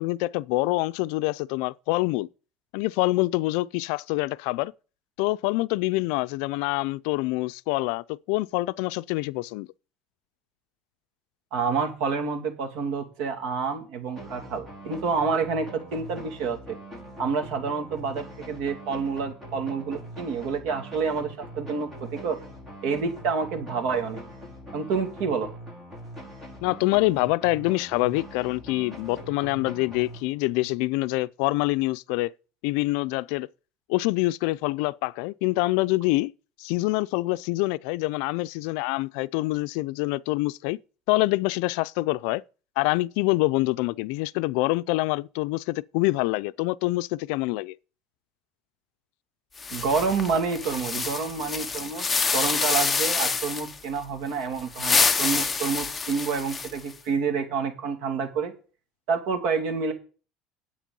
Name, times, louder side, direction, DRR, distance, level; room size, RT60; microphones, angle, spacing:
voice 1, 0.0-2.3 2.7-4.7 5.2-9.7 26.6-32.3 32.6-33.5 33.9-36.3 36.6-40.8 41.1-42.4 42.8-47.7, left 21 dB, 80° left, 0.4 m, -26 dB
voice 2, 11.5-16.8 17.2-22.4 22.8-24.2 24.7-25.5 49.7-52.1 52.3-58.5 59.1-59.9, right 5 dB, 70° right, 2.6 m, -28 dB
sound 1, 14.2-30.7, equal, 15° right, 5.4 m, -42 dB
sound 2, 49.6-53.8 54.6-56.9, left 4 dB, 15° left, 0.8 m, -27 dB
10.5 x 8.3 x 5.4 m
cardioid pair, 135°, 0 cm